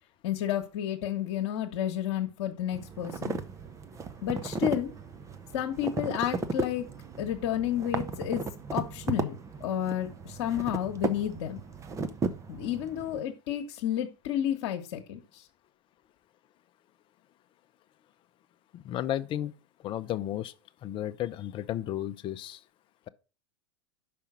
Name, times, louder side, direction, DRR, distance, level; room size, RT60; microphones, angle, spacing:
voice 1, 0.2-3.4 4.2-4.9 5.5-6.9 7.2-8.4 8.7-11.6 12.5-15.4, left 11 dB, 60° left, 1.2 m, -31 dB
sound 1, 2.7-13.2, right 4 dB, 20° right, 0.7 m, -35 dB
voice 2, 18.7-19.5 19.8-20.5 20.8-22.6, left 12 dB, 35° left, 0.6 m, -33 dB
5.6 x 5.1 x 6.0 m
hypercardioid pair, 95°, 15 cm